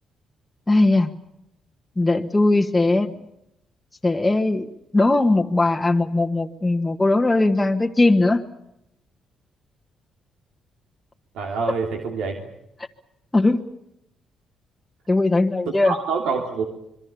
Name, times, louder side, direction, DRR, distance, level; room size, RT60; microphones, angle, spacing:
voice 1, 0.7-1.2 2.0-3.2 4.0-8.4 13.3-13.6 15.1-16.0, left 2 dB, 15° left, 3 dB, 1.5 m, -19 dB
voice 2, 11.3-12.4 15.8-16.6, right 5 dB, 85° right, 3 dB, 3.1 m, -26 dB
26.0 x 23.5 x 7.0 m, 0.82 s
cardioid pair, 90°, 0 cm